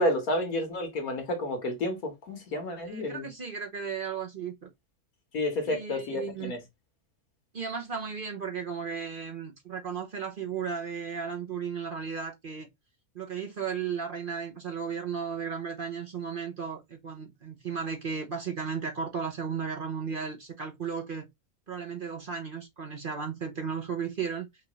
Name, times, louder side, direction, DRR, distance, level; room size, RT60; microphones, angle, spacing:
voice 1, 0.0-3.3 5.3-6.6, left 1 dB, 75° left, 1.9 m, -30 dB
voice 2, 2.9-4.7 5.7-6.5 7.5-12.7 13.1-21.3 21.7-24.5, right 6 dB, 45° right, 0.9 m, -35 dB
5.9 x 2.5 x 3.1 m
omnidirectional pair, 1.5 m